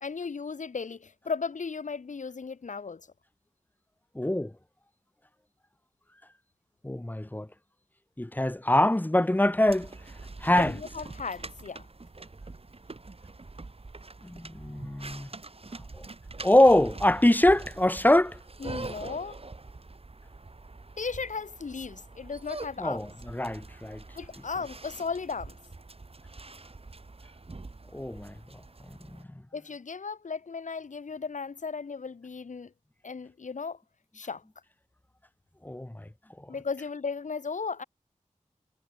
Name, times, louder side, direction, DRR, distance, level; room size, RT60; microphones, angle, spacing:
voice 1, 0.0-3.0 10.5-11.8 18.6-19.4 21.0-23.0 24.1-25.6 29.5-32.7 33.0-33.8 34.1-34.4 36.5-37.8, left 5 dB, 70° left, 1.0 m, -36 dB
voice 2, 4.1-4.5 6.8-7.5 8.2-9.9 10.4-10.7 14.2-15.3 16.4-18.4 22.8-24.0 27.9-28.3 29.1-29.2 35.6-36.0, left 1 dB, 15° left, 1.0 m, -24 dB
sound 1, 9.6-29.2, right 3 dB, 50° right, 2.4 m, -44 dB
wide cardioid pair, 50°, 13 cm